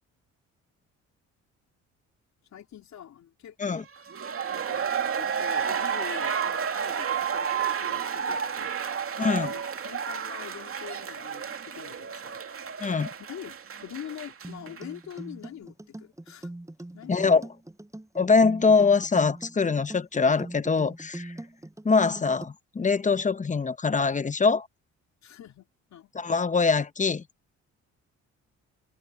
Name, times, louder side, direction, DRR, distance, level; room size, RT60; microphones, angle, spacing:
voice 1, 2.5-3.9 4.5-8.7 9.2-12.5 13.2-16.5 16.9-17.5 25.2-26.1, left 10 dB, 65° left, 3.5 m, -44 dB
sound 1, 4.0-14.8 15.1-15.2, right 7 dB, 45° right, 2.7 m, -31 dB
voice 2, 9.2-9.5 12.8-13.1 17.1-17.5 18.1-21.3 21.8-24.7 26.1-27.2, left 4 dB, 25° left, 0.9 m, -23 dB
sound 2, 14.4-22.4, right 1 dB, 10° right, 7.9 m, -41 dB
cardioid pair, 90°, 30 cm